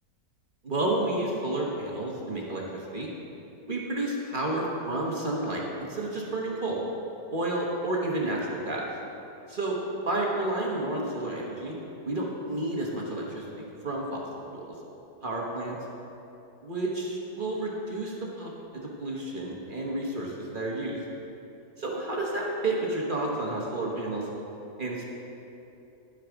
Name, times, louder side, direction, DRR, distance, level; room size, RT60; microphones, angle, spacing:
voice 1, 0.6-3.1 3.7-6.8 7.3-8.8 9.5-9.8 10.0-11.7 12.0-14.2 14.5-14.7 15.2-15.8 16.6-21.0 21.8-24.2 24.8-25.0, right 2 dB, 35° right, -3 dB, 1.1 m, -31 dB
11.0 x 8.8 x 3.5 m, 2.9 s
omnidirectional pair, 1.8 m